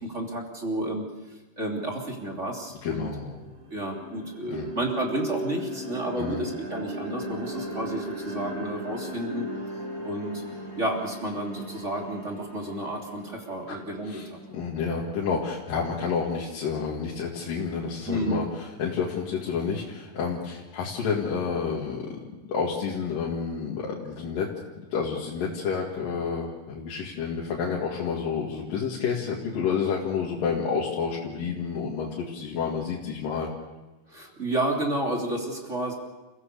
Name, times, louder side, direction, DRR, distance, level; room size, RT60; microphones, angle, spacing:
voice 1, 0.0-1.0 1.6-3.1 3.7-9.5 10.0-10.4 10.8-14.4 18.1-18.4 34.1-35.9, right 1 dB, 20° right, 0 dB, 3.1 m, -31 dB
sound 1, 2.4-2.5 2.9-15.0, equal, 55° right, 5.1 m, -38 dB
voice 2, 2.8-3.4 4.5-4.7 6.2-6.4 13.7-13.8 14.0-22.1 22.5-24.5 24.9-33.5, left 6 dB, 80° left, -3 dB, 3.7 m, -29 dB
29.0 x 16.0 x 6.8 m, 1.1 s
omnidirectional pair, 3.9 m